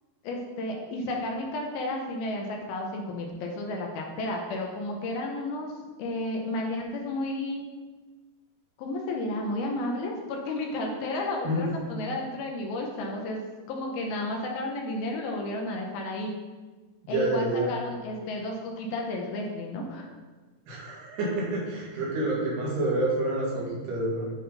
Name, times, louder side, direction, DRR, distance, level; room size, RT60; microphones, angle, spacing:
voice 1, 0.2-5.7 6.0-7.6 8.8-13.4 13.7-16.3 17.1-20.1, left 1 dB, 75° left, 0 dB, 2.5 m, -32 dB
voice 2, 17.0-17.7 20.7-24.3, right 1 dB, 80° right, -6 dB, 4.0 m, -28 dB
10.0 x 4.0 x 3.9 m, 1.3 s
omnidirectional pair, 4.7 m